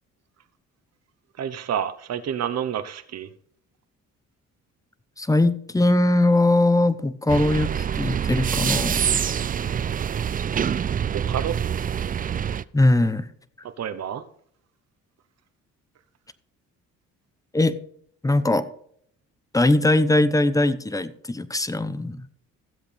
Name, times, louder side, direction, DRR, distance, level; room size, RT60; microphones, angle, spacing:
voice 1, 1.4-3.3 11.1-11.6 13.8-14.2, right 9 dB, 60° right, 1.1 m, -29 dB
voice 2, 5.2-9.1 12.7-13.3 17.5-17.8 18.2-18.7 19.5-22.2, left 2 dB, 10° left, 0.8 m, -20 dB
sound 1, 7.3-12.6, right 8 dB, 30° right, 0.4 m, -25 dB
15.0 x 7.9 x 3.5 m
cardioid pair, 90°, 30 cm